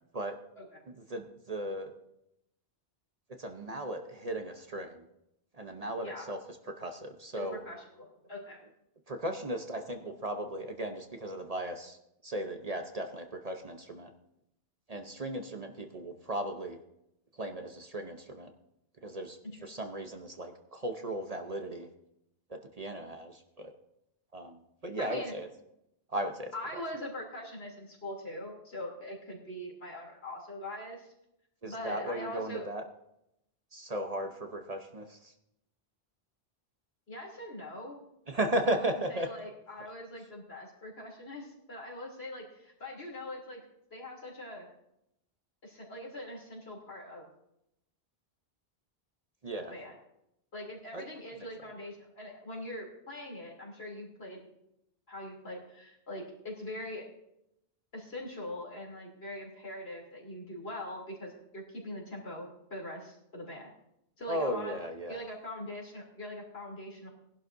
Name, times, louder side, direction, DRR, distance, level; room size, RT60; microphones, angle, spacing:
voice 1, 0.9-1.9 3.4-5.1 5.5-6.4 6.7-7.6 9.1-12.0 12.2-14.1 14.9-16.8 17.3-18.5 19.0-21.9 22.5-23.7 24.3-25.5 26.1-26.5 31.6-32.8 33.7-35.3 38.3-39.3 49.4-49.7 50.9-51.1 64.3-65.2, right 1 dB, 40° right, 5 dB, 0.9 m, -36 dB
voice 2, 7.3-8.6 19.4-19.6 25.0-25.3 26.5-31.1 31.6-32.6 37.1-38.0 38.6-43.6 43.9-44.7 45.6-47.3 49.7-50.0 50.5-54.4 55.1-57.1 57.9-63.7 64.2-64.8 65.1-67.1, left 1 dB, 70° left, -2 dB, 3.4 m, -42 dB
19.0 x 11.5 x 2.6 m, 0.82 s
omnidirectional pair, 1.1 m